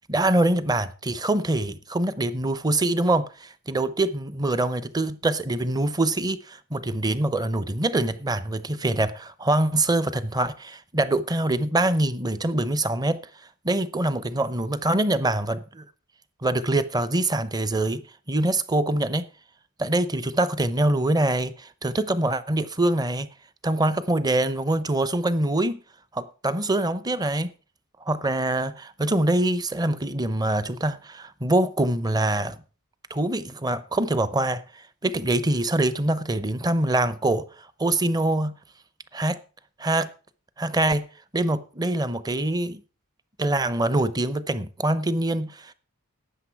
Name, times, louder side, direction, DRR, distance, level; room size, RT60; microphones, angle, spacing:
voice 1, 0.1-13.2 13.6-15.8 16.4-18.0 18.3-19.2 19.8-23.3 23.6-25.8 26.1-27.5 28.1-32.6 33.1-34.6 35.0-37.4 37.8-38.5 39.1-39.4 39.8-40.1 40.6-41.0 41.3-42.8 43.4-45.7, right 1 dB, 20° right, 0.7 m, -24 dB
12.5 x 8.6 x 4.6 m
head